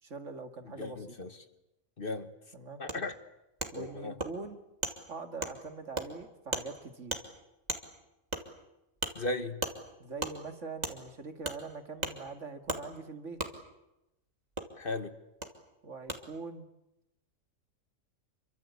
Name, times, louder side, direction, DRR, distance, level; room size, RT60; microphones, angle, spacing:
voice 1, 0.0-1.2 2.5-2.8 3.7-4.6 5.1-7.2 10.0-13.4 15.8-16.7, right 4 dB, 65° right, 2.3 m, -43 dB
voice 2, 0.8-1.4 2.0-2.3 2.8-3.2 3.7-4.2 9.1-9.6 14.7-15.1, left 2 dB, 45° left, 1.6 m, -36 dB
Wood, 2.9-3.0 3.6-3.7 4.2-4.3 4.8-4.9 5.4-5.5 5.9-6.1 6.5-6.7 7.1-7.2 7.7-7.8 8.3-8.4 9.0-9.1 9.6-9.7 10.2-10.3 10.8-10.9 11.4-11.6 12.0-12.1 12.7-12.8 13.4-13.5 14.6-14.7 15.4-15.5 16.1-16.2, right 2 dB, 30° right, 2.7 m, -34 dB
27.5 x 24.0 x 8.4 m
omnidirectional pair, 1.4 m